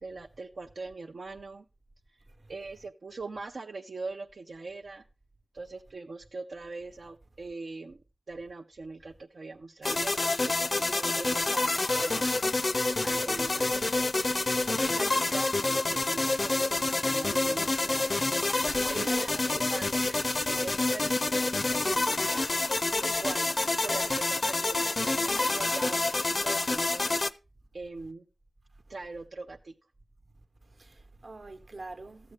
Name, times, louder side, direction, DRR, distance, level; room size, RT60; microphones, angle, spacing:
voice 1, 0.0-1.6 2.1-2.2 2.5-5.0 5.5-8.0 8.3-12.7 13.0-14.1 14.7-18.1 18.9-22.5 22.9-23.5 23.8-27.4 27.7-28.2 28.9-29.7, right 3 dB, 85° right, 0.6 m, -41 dB
sound 1, 9.8-27.3, left 2 dB, 55° left, 0.5 m, -28 dB
voice 2, 18.9-19.8 30.8-32.3, right 2 dB, 65° right, 1.0 m, -44 dB
13.0 x 7.7 x 3.3 m
wide cardioid pair, 50°, 0 cm